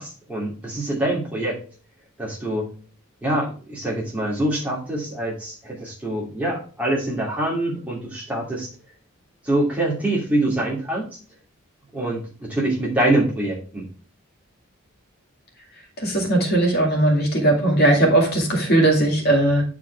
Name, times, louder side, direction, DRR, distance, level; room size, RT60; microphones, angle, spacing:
voice 1, 0.0-1.6 2.2-2.7 3.2-8.7 9.4-11.2 11.9-13.9, right 1 dB, 5° right, -4 dB, 2.6 m, -25 dB
voice 2, 16.0-19.6, right 1 dB, 45° left, 0 dB, 2.2 m, -18 dB
10.0 x 4.8 x 3.4 m, 0.39 s
head